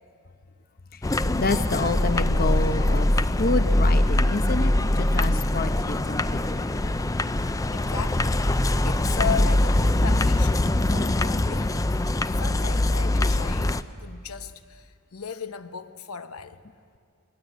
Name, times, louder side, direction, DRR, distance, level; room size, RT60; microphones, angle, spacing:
voice 1, 0.9-7.3, left 3 dB, 45° left, 9 dB, 0.9 m, -29 dB
sound 1, 1.0-13.8, left 1 dB, 15° left, 0.5 m, -23 dB
voice 2, 7.7-12.0 12.4-16.6, left 6 dB, 80° left, 10 dB, 1.1 m, -36 dB
23.0 x 20.5 x 9.2 m, 2.3 s
head